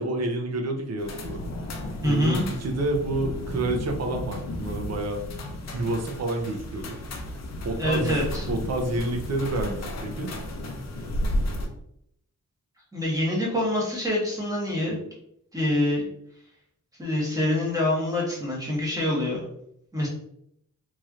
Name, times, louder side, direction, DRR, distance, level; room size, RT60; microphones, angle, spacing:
voice 1, 0.0-1.4 2.0-5.2 5.7-7.0 7.6-10.3, right 2 dB, 60° right, 4 dB, 0.6 m, -29 dB
sound 1, 1.0-11.7, left 1 dB, 60° left, 0.6 m, -33 dB
voice 2, 2.0-2.4 7.8-8.5 12.9-15.0 15.5-16.1 17.0-19.4 19.9-20.1, left 1 dB, 10° right, -4 dB, 1.2 m, -25 dB
3.1 x 2.8 x 2.4 m, 0.74 s
wide cardioid pair, 115°, 30 cm